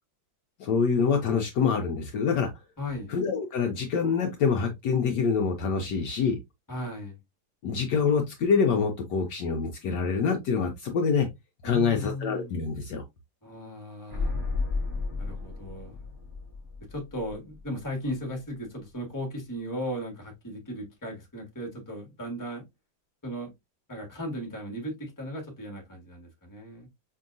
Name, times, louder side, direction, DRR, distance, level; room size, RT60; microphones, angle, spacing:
voice 1, 0.6-2.5 3.1-6.4 7.6-11.3 11.6-13.0, left 5 dB, 70° left, 1.1 m, -26 dB
voice 2, 2.8-3.1 6.7-7.2 11.6-12.5 13.4-14.3 15.2-16.0 16.9-22.6 23.2-23.5 23.9-26.9, equal, 10° left, 1.1 m, -36 dB
sound 1, 14.1-17.9 18.1-18.2, left 3 dB, 15° right, 0.8 m, -33 dB
5.2 x 2.7 x 2.5 m
omnidirectional pair, 2.1 m